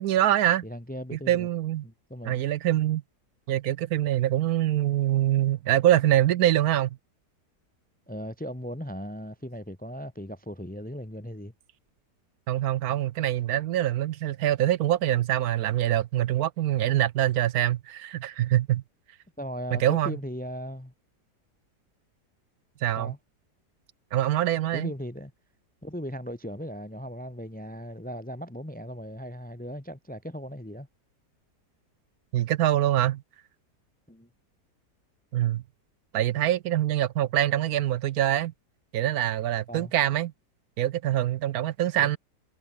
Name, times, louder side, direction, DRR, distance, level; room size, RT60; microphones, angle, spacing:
voice 1, 0.0-0.7 1.1-1.8 2.2-3.0 3.5-7.0 12.5-18.8 19.7-20.2 22.8-23.1 24.1-24.9 32.3-33.2 35.3-35.6 36.1-38.5 38.9-40.3 40.8-42.2, right 12 dB, 70° right, 1.0 m, -24 dB
voice 2, 0.6-1.5 1.8-2.4 8.1-11.5 19.4-20.9 23.0-23.2 24.7-25.3 25.8-30.9 34.1-34.3 39.7-39.9 42.0-42.2, equal, 5° left, 1.6 m, -37 dB
omnidirectional pair, 1.8 m